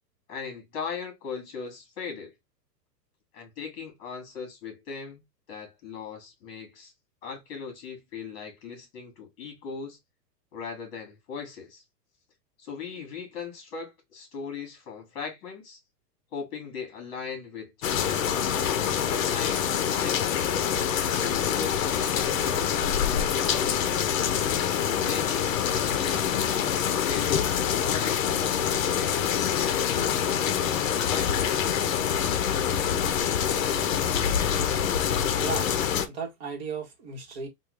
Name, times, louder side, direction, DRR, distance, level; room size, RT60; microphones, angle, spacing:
voice 1, 0.3-2.3 3.3-5.2 5.5-6.9 7.2-10.0 10.5-11.8 12.6-15.8 16.3-18.1 18.6-20.7 21.1-24.0 24.8-28.3 28.8-30.7 31.1-31.4, left 5 dB, 35° left, 1.9 m, -39 dB
sound 1, 17.8-36.1, left 8 dB, 50° left, 0.6 m, -26 dB
voice 2, 35.4-37.5, right 5 dB, 40° right, 1.2 m, -36 dB
3.6 x 2.4 x 3.1 m
hypercardioid pair, 170°, 50 cm